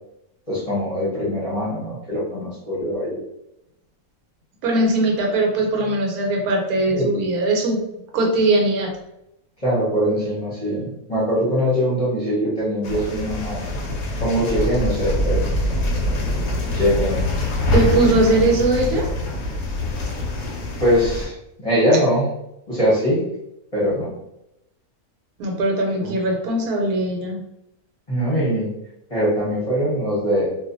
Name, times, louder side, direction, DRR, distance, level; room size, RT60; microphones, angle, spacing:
voice 1, 0.5-3.2 6.9-7.1 9.6-13.7 14.2-15.5 16.7-17.2 20.8-21.3 21.6-22.3 22.7-23.2 23.7-24.1 26.0-26.2 28.1-28.7 29.1-30.5, equal, 30° left, -7 dB, 0.8 m, -22 dB
voice 2, 4.6-7.8 8.1-8.9 17.7-19.1 25.4-27.4, right 2 dB, 80° right, 1 dB, 1.2 m, -20 dB
sound 1, 12.8-21.3, left 1 dB, 65° left, 0.9 m, -24 dB
2.5 x 2.3 x 2.5 m, 0.82 s
omnidirectional pair, 1.5 m